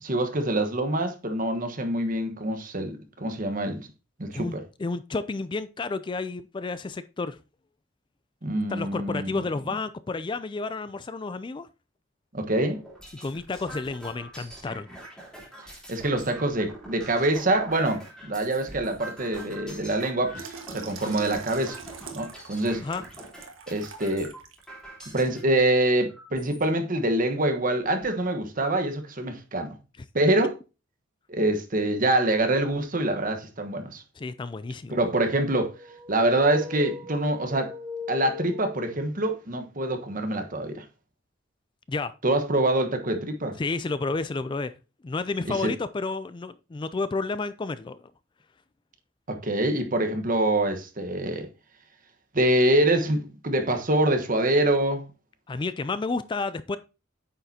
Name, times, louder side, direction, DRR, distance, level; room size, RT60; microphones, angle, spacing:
voice 1, 0.0-3.9 4.2-4.6 8.4-9.4 12.3-12.8 15.9-21.8 22.1-22.8 23.7-24.3 25.1-29.8 30.1-30.5 31.3-34.0 34.9-35.7 36.1-37.7 38.1-40.8 42.2-43.6 45.5-45.7 49.3-51.5 52.3-55.0, right 1 dB, 45° right, 1.3 m, -25 dB
voice 2, 4.3-7.4 8.7-11.7 13.2-14.9 22.8-23.0 30.0-30.1 34.2-35.0 41.9-42.1 43.6-44.7 45.0-48.1 55.5-56.8, left 3 dB, 25° left, 0.3 m, -31 dB
sound 1, 12.6-25.4 26.1-26.6 27.2-27.3 27.6-28.2, right 1 dB, 5° left, 3.5 m, -45 dB
Water tap faucet / Sink (filling or washing), 20.4-24.7 25.1-25.3, right 5 dB, 85° right, 1.5 m, -43 dB
sound 2, 35.7-39.3, left 4 dB, 20° right, 1.3 m, -39 dB
9.0 x 6.7 x 2.8 m
head